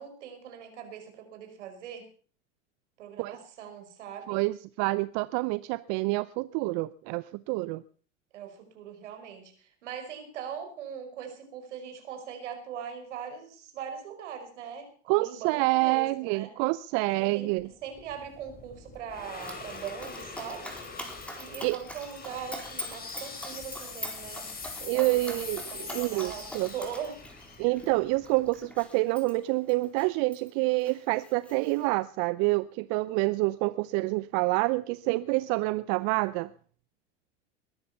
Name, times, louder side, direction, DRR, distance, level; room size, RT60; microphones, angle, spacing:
voice 1, 0.0-2.1 3.0-4.4 8.3-16.5 16.9-17.5 17.8-20.7 21.4-24.5 24.9-25.4 25.7-27.2, right 8 dB, 70° right, 6 dB, 5.2 m, -41 dB
voice 2, 4.3-7.8 15.1-17.7 21.6-21.8 24.8-26.7 27.6-36.5, right 22 dB, 50° right, 17 dB, 0.7 m, -27 dB
sound 1, 17.6-28.8, left 4 dB, 25° left, 4.8 m, -43 dB
Dog, 19.4-30.5 30.8-31.8, equal, 5° left, 4.2 m, -43 dB
21.5 x 10.5 x 5.6 m, 0.44 s
hypercardioid pair, 85°, 37 cm